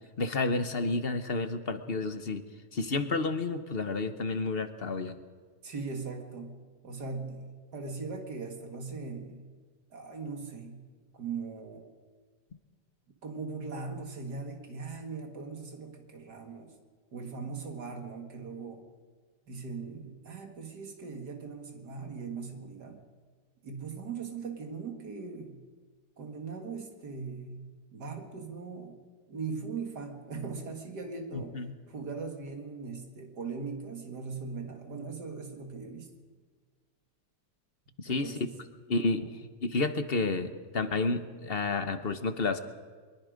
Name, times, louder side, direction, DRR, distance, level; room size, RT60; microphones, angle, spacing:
voice 1, 0.2-2.5 2.7-5.2 31.3-31.7 38.0-38.4 38.9-39.3 39.6-42.6, left 3 dB, 40° left, 9 dB, 1.1 m, -30 dB
voice 2, 5.6-9.5 9.9-10.8 11.1-11.9 13.2-16.7 17.1-18.9 19.5-23.0 23.6-25.6 26.2-29.0 29.3-31.6 31.9-36.1 38.0-38.5, right 4 dB, 75° right, 4 dB, 2.6 m, -40 dB
23.5 x 22.0 x 5.2 m, 1.5 s
omnidirectional pair, 1.8 m